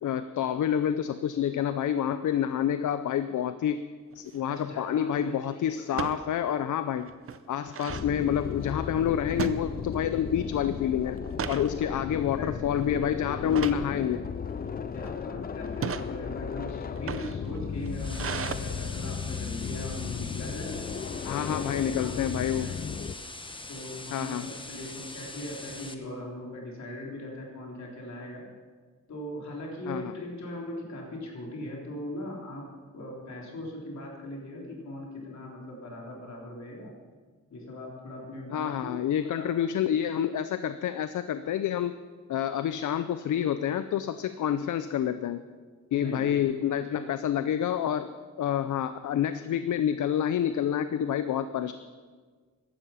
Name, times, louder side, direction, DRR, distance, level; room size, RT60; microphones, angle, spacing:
voice 1, 0.0-3.8 4.1-7.1 7.5-11.2 11.5-14.2 21.3-22.7 24.1-24.4 29.9-30.1 38.5-42.0 42.3-45.4 45.9-48.1 48.4-51.7, left 9 dB, 85° left, 11 dB, 0.6 m, -28 dB
sound 1, 4.1-4.5 5.9-6.2 6.7-6.8 7.1-8.1 9.4-10.2 10.5-10.8 11.2-11.7 12.3-12.6 13.5-13.9 14.6-15.1 15.7-16.1 16.9-18.5, right 7 dB, 50° right, 0.6 m, -35 dB
voice 2, 4.5-5.6 5.9-6.0 11.7-11.8 12.4-12.5 14.9-21.0 21.5-21.7 21.9-22.1 22.6-22.8 23.7-28.5 29.1-36.9 37.5-38.9 39.4-39.5 45.9-46.3 46.9-47.0, left 1 dB, 70° left, -2 dB, 3.6 m, -40 dB
sound 2, 7.9-23.1, left 6 dB, 30° left, 0.4 m, -35 dB
sound 3, 17.9-25.9, left 2 dB, 15° left, 0.9 m, -42 dB
14.5 x 11.5 x 5.7 m, 1.5 s
wide cardioid pair, 155°, 29 cm